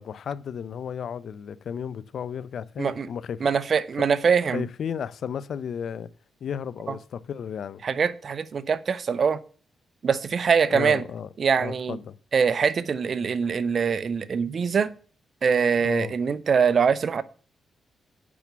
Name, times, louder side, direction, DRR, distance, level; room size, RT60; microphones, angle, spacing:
voice 1, 0.0-3.5 4.5-6.1 6.4-7.8 10.7-11.3 11.6-12.2 15.8-16.1, left 7 dB, 70° left, 0.6 m, -33 dB
voice 2, 3.4-4.6 7.8-9.4 10.0-11.0 11.4-12.0 12.3-14.9 15.4-17.2, right 6 dB, 55° right, 0.7 m, -23 dB
8.5 x 6.0 x 6.8 m
supercardioid pair, 60°, 0 cm